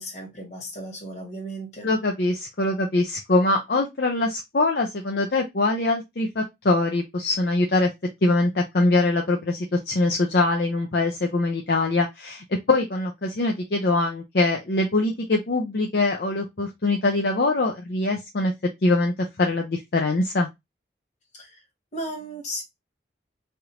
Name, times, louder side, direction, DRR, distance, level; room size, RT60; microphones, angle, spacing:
voice 1, 0.0-1.9 21.3-21.6 21.9-22.6, right 1 dB, 40° left, 1.5 m, -35 dB
voice 2, 1.8-7.9 8.2-18.5 18.8-20.5, left 2 dB, 55° left, 0.5 m, -23 dB
3.3 x 2.5 x 2.8 m
head